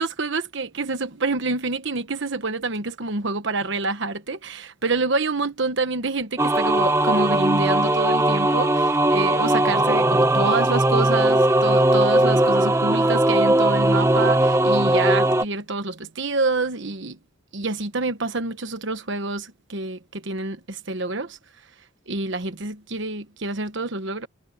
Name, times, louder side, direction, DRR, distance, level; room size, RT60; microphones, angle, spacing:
voice 1, 0.0-17.2 17.5-21.4 22.1-24.3, right 3 dB, 55° right, 1.2 m, -27 dB
sound 1, 6.4-15.4, right 1 dB, 15° right, 0.9 m, -19 dB
head